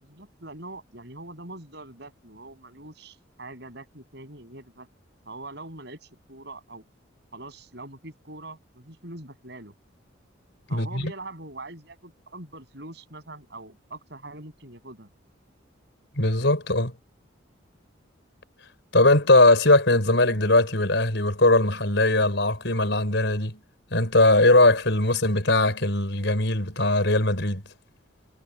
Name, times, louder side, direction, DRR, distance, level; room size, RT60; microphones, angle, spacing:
voice 1, 0.0-4.9 5.3-6.8 7.3-9.7 10.7-15.1, right 2 dB, 60° right, 6.9 m, -43 dB
voice 2, 10.7-11.1 16.2-16.9 18.9-23.6 23.9-27.6, left 2 dB, 65° left, 5.5 m, -20 dB
head